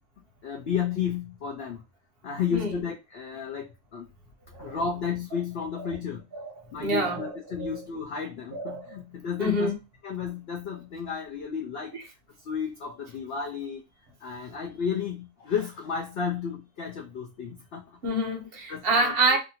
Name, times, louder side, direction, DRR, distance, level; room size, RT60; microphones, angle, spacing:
voice 1, 0.4-1.8 2.2-4.1 4.6-6.2 6.7-9.7 10.0-12.0 12.4-13.8 14.2-17.8 18.7-19.1, left 7 dB, 65° left, 0.6 m, -32 dB
voice 2, 6.8-7.3 7.6-7.8 8.5-9.0 9.4-9.7 11.9-12.0 18.0-19.4, right 2 dB, 50° right, 0.9 m, -27 dB
2.7 x 2.5 x 2.8 m
omnidirectional pair, 1.5 m